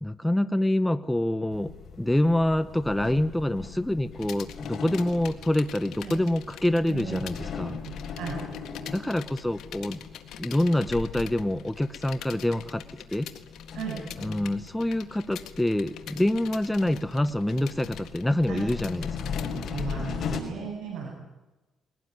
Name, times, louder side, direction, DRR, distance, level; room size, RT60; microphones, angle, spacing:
voice 1, 0.0-7.8 8.9-10.0 10.4-12.8 13.1-13.3 14.2-19.3, left 1 dB, 5° left, 11 dB, 1.0 m, -26 dB
sound 1, 1.5-20.4, left 6 dB, 50° left, 5.7 m, -39 dB
sound 2, 4.2-7.4 7.7-20.0, left 10 dB, 80° left, 2.0 m, -45 dB
voice 2, 6.9-7.5 7.8-8.4 13.7-14.0 18.5-18.6 19.7-21.2, right 6 dB, 80° right, 0 dB, 7.8 m, -36 dB
22.5 x 18.5 x 9.6 m, 1.1 s
cardioid pair, 90°, 0 cm